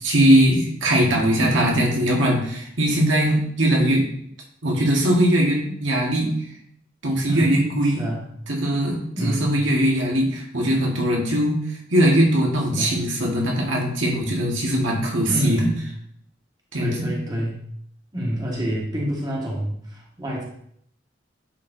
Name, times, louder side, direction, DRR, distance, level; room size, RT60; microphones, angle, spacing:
voice 1, 0.0-4.1 4.6-6.3 7.0-8.1 8.5-15.7 16.7-17.1, right 1 dB, 90° right, -2 dB, 1.7 m, -20 dB
voice 2, 7.3-7.6 7.9-8.2 9.1-9.5 12.7-13.0 15.3-15.7 16.7-17.6 18.1-20.4, equal, 20° right, -3 dB, 1.6 m, -27 dB
10.5 x 4.5 x 2.7 m, 0.68 s
head